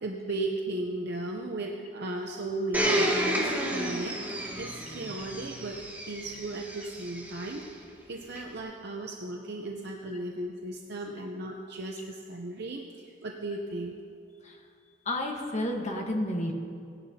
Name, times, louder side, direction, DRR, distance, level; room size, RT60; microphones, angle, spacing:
voice 1, 0.0-14.0, right 2 dB, 60° right, 1 dB, 0.7 m, -36 dB
Domestic sounds home sounds, 2.7-7.6 8.3-8.4, equal, 10° right, 1.3 m, -31 dB
voice 2, 15.0-16.5, left 1 dB, 40° left, 1 dB, 1.4 m, -31 dB
18.0 x 11.0 x 2.8 m, 2.3 s
head